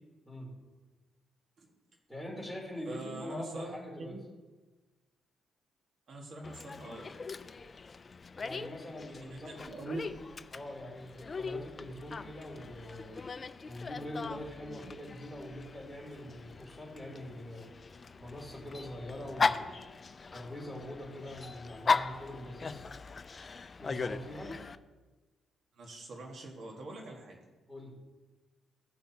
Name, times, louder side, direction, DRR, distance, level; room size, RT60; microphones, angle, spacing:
voice 1, 2.1-4.1 8.4-9.9 10.5-13.2 13.6-17.7 18.2-19.8 20.3-22.9 23.8-24.5 27.7-28.0, left 1 dB, 5° left, -3 dB, 3.3 m, -43 dB
voice 2, 2.8-4.2 6.1-7.1 9.1-10.0 25.7-27.4, right 2 dB, 60° right, 0 dB, 1.6 m, -43 dB
Dog, 6.4-24.8, left 4 dB, 35° left, 0.4 m, -38 dB
16.5 x 5.7 x 2.9 m, 1.3 s
cardioid pair, 90°, 0 cm